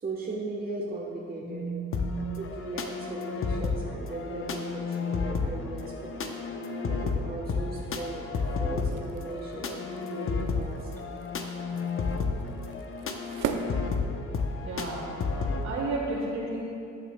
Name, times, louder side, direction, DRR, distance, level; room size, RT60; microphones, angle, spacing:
voice 1, 0.0-1.7 2.4-5.9 6.2-6.4 6.9-8.2 8.6-9.8 10.0-10.8, right 2 dB, 30° right, -3 dB, 1.1 m, -37 dB
voice 2, 1.4-2.4 14.6-15.1 15.6-16.6, right 2 dB, 65° right, -3 dB, 2.2 m, -33 dB
sound 1, 1.9-15.6, left 4 dB, 45° left, 0.8 m, -32 dB
sound 2, 8.7-14.7, right 7 dB, 85° right, 0.6 m, -40 dB
14.0 x 8.8 x 2.2 m, 2.7 s
cardioid pair, 90°, 30 cm